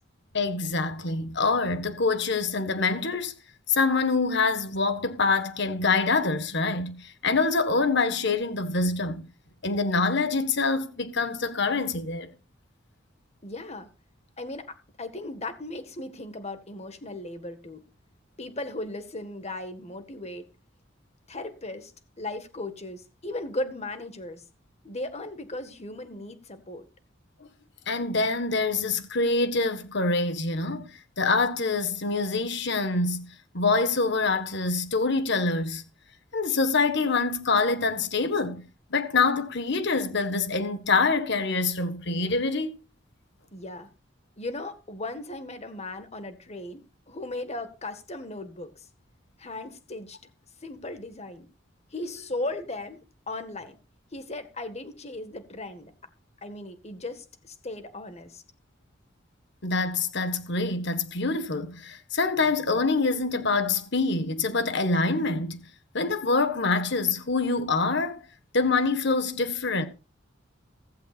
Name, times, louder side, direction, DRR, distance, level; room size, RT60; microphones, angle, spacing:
voice 1, 0.3-3.3 3.7-9.2 9.6-12.3 27.9-30.9 31.2-35.8 36.3-38.6 38.9-42.7 59.6-65.6 65.9-68.2 68.5-69.8, left 3 dB, 65° left, 1.6 m, -25 dB
voice 2, 13.4-13.9 14.4-17.8 18.4-20.5 21.3-21.9 22.2-24.4 24.8-26.8 43.5-43.9 44.4-48.9 49.4-50.2 50.6-51.5 51.9-53.0 53.3-53.8 54.1-55.9 56.4-58.4, left 2 dB, 35° left, 1.8 m, -37 dB
15.5 x 15.0 x 2.6 m
head